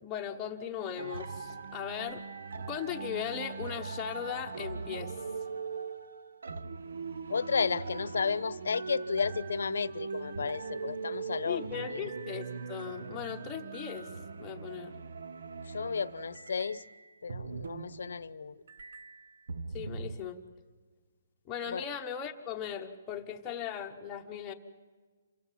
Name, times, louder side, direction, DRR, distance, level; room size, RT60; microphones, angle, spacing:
voice 1, 0.0-2.2 2.6-5.1 11.5-14.1 14.4-15.0 19.7-20.4 21.5-24.5, left 9 dB, 10° left, 2 dB, 1.1 m, -38 dB
sound 1, 1.0-18.4 18.7-20.2, right 5 dB, 70° right, 1.0 m, -41 dB
voice 2, 7.3-11.7 11.9-12.0 15.7-16.8 17.2-18.6 21.7-21.8, left 5 dB, 85° left, 19 dB, 0.9 m, -33 dB
27.5 x 16.5 x 7.5 m, 1.5 s
hypercardioid pair, 175°, 0 cm